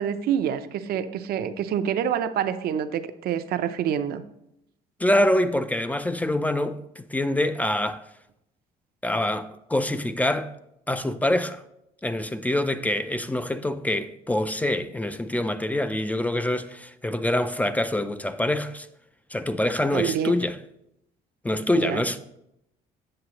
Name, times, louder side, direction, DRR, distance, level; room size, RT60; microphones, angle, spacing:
voice 1, 0.0-4.2 19.9-20.4 21.8-22.1, right 9 dB, 65° right, 0.6 m, -27 dB
voice 2, 5.0-8.0 9.0-10.5 10.9-11.6 12.0-18.9 19.3-20.6 21.4-22.2, left 1 dB, 10° left, 0.3 m, -25 dB
7.7 x 7.3 x 2.9 m
cardioid pair, 110°, 17 cm